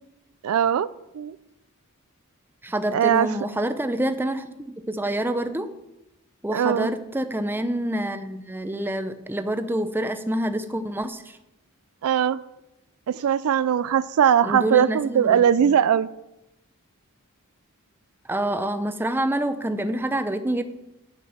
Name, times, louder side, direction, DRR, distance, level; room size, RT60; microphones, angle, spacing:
voice 1, 0.4-0.9 1.1-1.3 2.9-3.3 6.5-6.9 12.0-12.4 13.1-16.1, right 8 dB, 70° right, 17 dB, 0.3 m, -20 dB
voice 2, 2.6-5.7 6.4-11.4 14.4-15.7 18.3-20.6, right 1 dB, 10° right, 9 dB, 0.6 m, -27 dB
9.3 x 5.9 x 7.2 m, 0.92 s
head